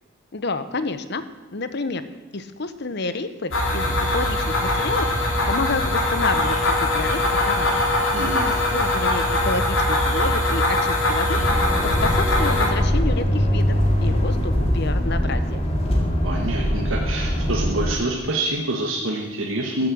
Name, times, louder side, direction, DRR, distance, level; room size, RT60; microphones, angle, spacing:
voice 1, 0.3-1.2 1.5-2.1 2.3-7.8 8.5-11.6 12.0-15.6, left 3 dB, 55° left, 12 dB, 0.9 m, -29 dB
sound 1, 3.5-12.7, left 1 dB, 70° left, 3.6 m, -22 dB
voice 2, 8.1-8.5 16.2-19.9, right 2 dB, 80° right, -1 dB, 1.5 m, -26 dB
sound 2, 11.3-17.9, equal, 30° left, 2.3 m, -22 dB
14.0 x 7.7 x 7.7 m, 1.2 s
head